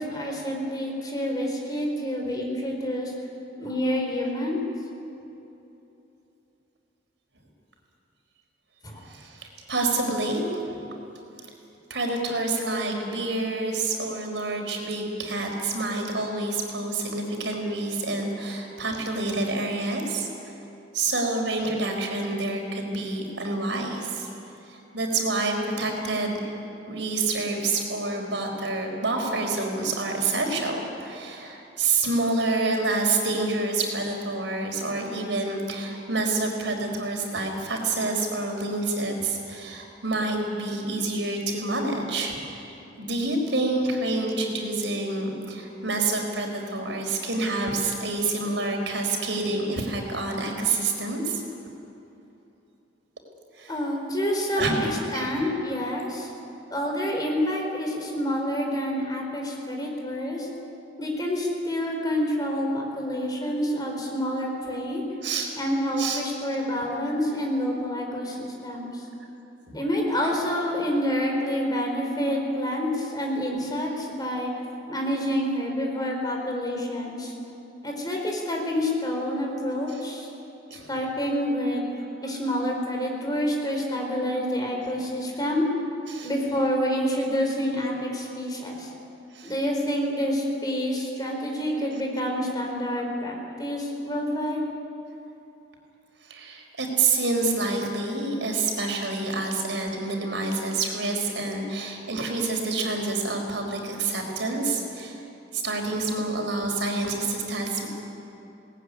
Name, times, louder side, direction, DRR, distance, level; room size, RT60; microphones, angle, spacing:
voice 1, 0.0-3.1 3.6-4.6 8.8-9.0 37.3-37.4 53.7-54.7 55.1-56.3 56.7-60.5 61.0-65.0 65.5-69.0 69.7-74.5 74.9-77.3 77.8-80.3 80.7-81.9 82.2-85.7 86.2-88.9 89.4-94.6, equal, 20° left, 0 dB, 4.5 m, -28 dB
voice 2, 9.1-10.8 11.9-20.3 20.9-24.3 24.7-42.4 43.0-51.4 53.5-53.7 54.6-55.5 65.2-65.5 66.0-66.2 66.7-66.8 69.7-69.8 79.9-80.0 80.7-80.9 86.1-86.3 89.3-89.5 96.2-105.2 105.5-107.9, right 3 dB, 80° right, 2 dB, 4.5 m, -28 dB
21.5 x 19.0 x 9.9 m, 2.9 s
head